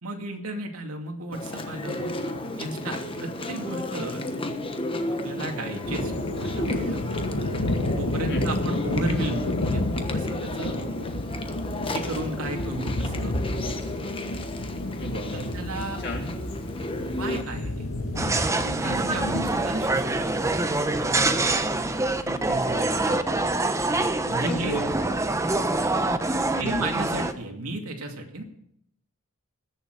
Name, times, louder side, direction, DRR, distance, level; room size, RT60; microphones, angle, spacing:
voice 1, 0.0-2.2 2.5-4.2 5.1-6.1 6.4-7.0 8.0-10.7 11.9-13.3 15.3-16.0 16.3-16.4 17.0-17.9 18.5-20.5 24.3-24.7 26.6-28.4, right 2 dB, 80° right, 2 dB, 2.4 m, -34 dB
Chewing mastication, 1.3-17.4, left 1 dB, 25° left, 1.1 m, -33 dB
sound 1, 5.8-21.9, left 1 dB, 70° left, 1.8 m, -31 dB
voice 2, 15.0-15.5 16.0-16.3 18.8-19.0 22.2-23.2 24.4-24.8 26.5-26.8, equal, 55° left, 0 dB, 3.4 m, -33 dB
sound 2, 18.2-27.3, right 2 dB, 15° right, 0.7 m, -25 dB
20.5 x 7.0 x 6.7 m, 0.74 s
head